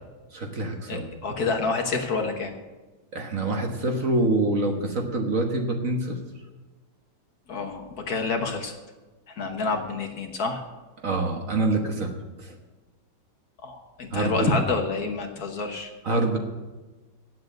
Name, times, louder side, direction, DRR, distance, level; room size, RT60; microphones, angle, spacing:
voice 1, 0.3-1.1 3.1-6.2 11.0-12.1 12.4-12.6 14.1-14.6 16.0-16.4, right 2 dB, 45° right, 3 dB, 1.5 m, -25 dB
voice 2, 0.9-2.5 7.5-8.8 9.3-10.6 13.6-15.9, left 4 dB, 55° left, 4 dB, 1.5 m, -28 dB
9.5 x 7.9 x 9.2 m, 1.2 s
omnidirectional pair, 2.2 m